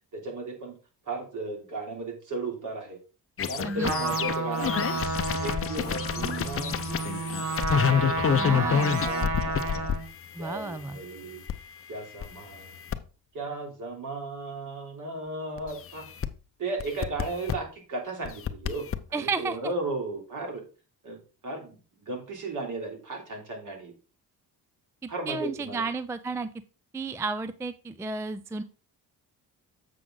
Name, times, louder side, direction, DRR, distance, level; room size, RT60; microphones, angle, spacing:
voice 1, 0.1-0.7 1.0-3.0 3.5-7.6 8.0-9.9 10.4-11.4 11.9-12.7 13.3-16.0 16.6-20.6 21.0-21.2 21.4-23.9 25.1-25.9, right 2 dB, 55° right, 2 dB, 3.1 m, -36 dB
sound 1, 3.4-11.5 12.2-13.0 15.6-16.3 16.8-17.6 18.3-19.0, left 8 dB, 35° left, 0.6 m, -28 dB
Trumpet, 3.8-10.1, right 3 dB, 80° right, 2.6 m, -31 dB
voice 2, 8.4-9.2 10.3-11.0 19.1-19.6 25.0-26.5 26.9-28.6, right 3 dB, 10° right, 13 dB, 0.3 m, -32 dB
7.5 x 6.0 x 3.8 m, 0.34 s
cardioid pair, 110°, 38 cm